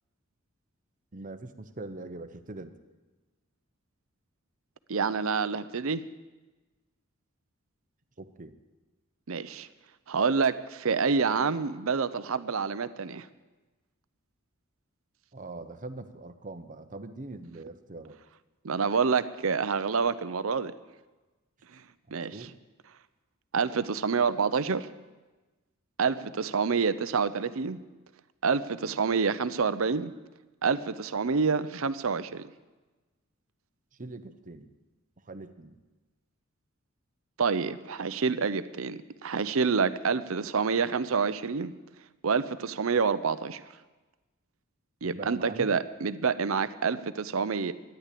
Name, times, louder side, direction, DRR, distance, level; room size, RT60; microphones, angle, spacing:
voice 1, 1.1-2.8 8.2-8.6 15.3-18.2 22.1-22.6 33.9-34.7 35.2-35.8 45.0-45.7, right 2 dB, 40° right, 9 dB, 0.9 m, -42 dB
voice 2, 4.9-6.0 9.3-9.7 10.1-13.3 18.6-20.7 22.1-22.4 23.5-24.9 26.0-27.8 28.4-30.1 30.6-32.5 37.4-41.7 42.2-43.6 45.0-47.7, right 5 dB, 70° right, 14 dB, 0.6 m, -27 dB
13.5 x 10.5 x 8.4 m, 1.2 s
head